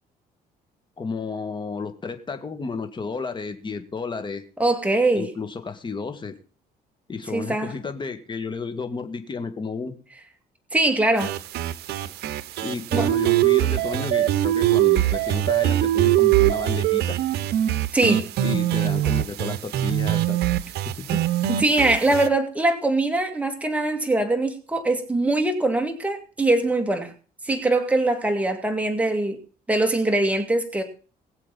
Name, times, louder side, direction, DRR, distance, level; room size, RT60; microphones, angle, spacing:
voice 1, 1.0-4.4 5.1-6.3 7.1-9.9 12.6-17.2 18.4-20.4 21.0-21.1 29.0-29.1, left 4 dB, 25° left, 2.2 m, -32 dB
voice 2, 4.6-5.3 7.3-7.7 10.7-11.3 12.9-13.1 17.9-18.3 21.1-21.2 21.5-27.1 27.4-29.4 29.7-30.8, right 2 dB, 10° right, 2.4 m, -22 dB
sound 1, 11.2-22.3, right 13 dB, 75° right, 0.9 m, -22 dB
21.5 x 7.5 x 4.2 m
cardioid pair, 110°, 17 cm